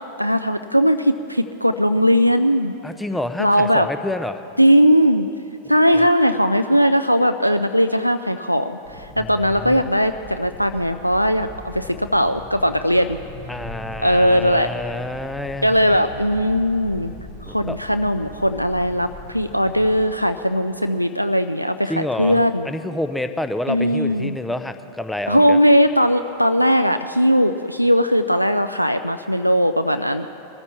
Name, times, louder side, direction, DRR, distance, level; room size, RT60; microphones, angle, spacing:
voice 1, 0.2-2.7 3.4-3.9 4.6-5.3 5.7-13.2 14.0-14.7 15.6-17.1 17.5-22.7 23.7-24.4 25.3-30.3, equal, 90° right, 8 dB, 0.3 m, -18 dB
voice 2, 2.8-4.4 6.0-6.1 9.1-9.8 13.5-15.7 17.5-17.8 21.9-25.6, left 1 dB, 5° left, 10 dB, 0.7 m, -28 dB
sound 1, 8.8-19.9, equal, 70° left, 4.7 m, -40 dB
22.0 x 14.0 x 4.3 m, 2.9 s
figure-of-eight pair, 90°, 0 cm